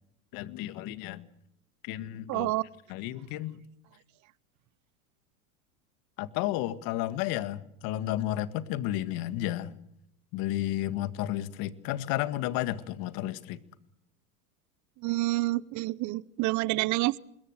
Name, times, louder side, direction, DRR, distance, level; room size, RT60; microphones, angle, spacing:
voice 1, 0.3-1.3 1.8-2.5 2.9-3.5 6.2-9.7 10.3-13.6, left 14 dB, 50° left, 13 dB, 2.0 m, -32 dB
voice 2, 2.3-2.6 15.0-17.2, right 19 dB, 40° right, 22 dB, 0.9 m, -28 dB
26.0 x 21.5 x 6.6 m, 0.77 s
hypercardioid pair, 100°, 43 cm